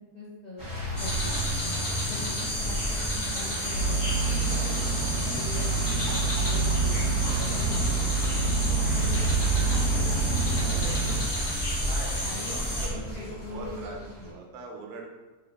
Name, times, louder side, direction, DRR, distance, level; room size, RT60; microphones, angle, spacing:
voice 1, 0.1-0.6 1.0-1.8 2.1-4.0 4.3-9.2 9.6-11.2 12.2-14.4, left 2 dB, 65° left, -7 dB, 0.4 m, -42 dB
sound 1, 0.6-14.3, right 1 dB, 20° right, 0.7 m, -34 dB
sound 2, 0.9-12.9, equal, 25° left, 1.0 m, -32 dB
sound 3, 3.7-11.2, right 4 dB, 85° left, 1.1 m, -27 dB
voice 2, 11.9-14.0 14.2-15.1, right 3 dB, 80° right, 0 dB, 1.1 m, -42 dB
2.9 x 2.5 x 3.3 m, 1.2 s
omnidirectional pair, 1.6 m